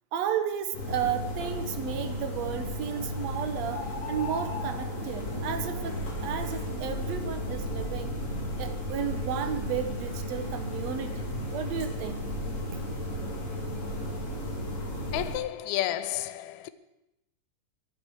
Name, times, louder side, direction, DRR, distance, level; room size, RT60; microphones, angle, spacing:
voice 1, 0.1-8.2 8.6-12.3 12.7-12.8, right 8 dB, 65° right, 2.1 m, -33 dB
sound 1, 0.7-15.4, left 1 dB, 50° left, 5.1 m, -34 dB
voice 2, 15.1-16.7, left 14 dB, 75° left, 1.8 m, -31 dB
24.5 x 10.5 x 4.8 m
omnidirectional pair, 3.7 m